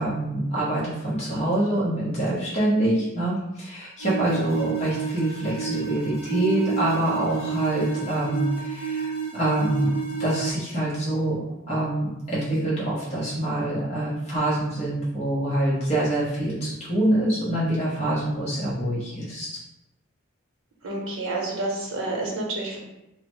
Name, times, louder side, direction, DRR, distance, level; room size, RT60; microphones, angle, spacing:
voice 1, 0.0-9.9 10.2-11.4 11.7-19.5, right 1 dB, 30° left, -8 dB, 0.7 m, -25 dB
sound 1, 4.0-10.5, right 7 dB, 90° left, 0.8 m, -30 dB
voice 2, 20.8-22.8, right 2 dB, 75° right, -2 dB, 0.7 m, -29 dB
3.1 x 2.0 x 3.0 m, 0.91 s
head